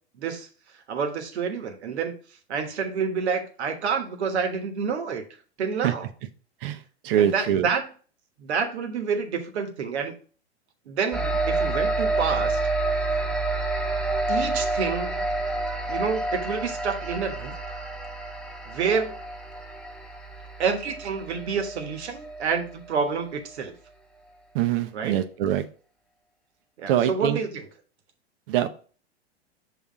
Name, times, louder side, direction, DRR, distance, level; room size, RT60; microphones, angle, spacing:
voice 1, 0.9-2.1 2.5-5.2 5.6-6.1 7.2-7.8 8.4-10.1 10.9-12.6 14.3-15.3 15.9-17.6 18.7-19.1 20.6-23.7 24.9-25.2 26.8-27.7, right 6 dB, 70° right, 6 dB, 1.3 m, -28 dB
voice 2, 7.0-7.7 24.5-25.6 26.9-27.4 28.5-28.7, right 11 dB, 55° right, 9 dB, 0.8 m, -23 dB
sound 1, 11.1-22.9, right 2 dB, ahead, 0.6 m, -29 dB
5.8 x 3.4 x 4.9 m, 0.40 s
hypercardioid pair, 100°, 34 cm